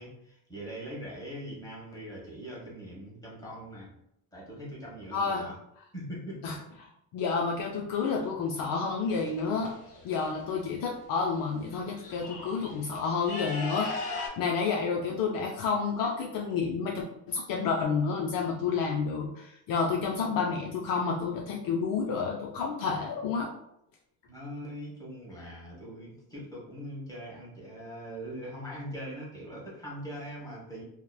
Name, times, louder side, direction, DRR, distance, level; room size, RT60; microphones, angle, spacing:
voice 1, 0.0-3.9 4.3-5.6 5.9-6.6 24.3-30.8, equal, 10° left, -5 dB, 1.1 m, -41 dB
voice 2, 5.1-5.4 6.4-6.6 7.1-9.7 10.0-23.5, left 5 dB, 60° left, 0 dB, 0.5 m, -30 dB
sound 1, 9.1-10.2 11.3-11.4 11.7-14.3, left 3 dB, 75° left, 0.9 m, -38 dB
2.9 x 2.0 x 2.2 m, 0.79 s
cardioid pair, 100°, 40 cm